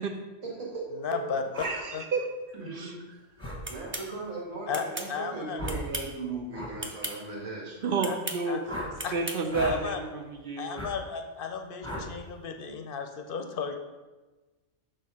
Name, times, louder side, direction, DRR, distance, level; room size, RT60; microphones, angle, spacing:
voice 1, 0.4-1.3 2.5-3.1 3.7-7.8, right 3 dB, 85° right, -3 dB, 2.0 m, -37 dB
voice 2, 0.9-1.4 1.9-2.0 4.7-5.6 8.0-8.2 8.5-8.6 9.0-9.1 9.6-10.0 10.6-13.8, left 6 dB, 55° left, 6 dB, 0.8 m, -34 dB
sound 1, 1.5-1.7 3.4-3.6 5.5-5.9 6.5-6.7 8.6-8.9 9.5-9.8 10.7-10.9 11.8-12.1, equal, 5° left, 1.1 m, -36 dB
voice 3, 1.6-2.3 2.7-3.0 7.8-8.8 9.1-10.8, right 3 dB, 55° right, 4 dB, 0.7 m, -31 dB
sound 2, 3.6-4.1 4.7-5.1 5.6-6.2 6.8-7.2 8.0-8.4 9.0-9.4, right 1 dB, 20° right, 0.4 m, -36 dB
6.2 x 4.5 x 4.8 m, 1.2 s
omnidirectional pair, 1.3 m